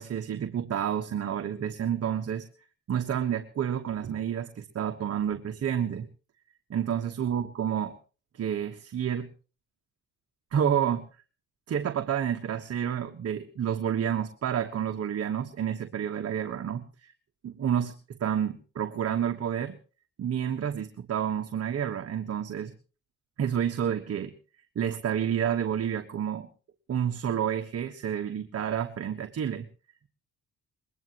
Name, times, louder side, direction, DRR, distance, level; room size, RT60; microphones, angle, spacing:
voice 1, 0.0-2.5 2.9-6.1 6.7-8.0 8.3-9.3 10.5-11.0 11.7-17.1 17.4-19.8 20.2-22.7 23.4-24.3 24.7-26.5 26.9-29.6, right 9 dB, 55° right, 7 dB, 1.3 m, -29 dB
21.5 x 20.0 x 3.0 m, 0.37 s
cardioid pair, 90°, 30 cm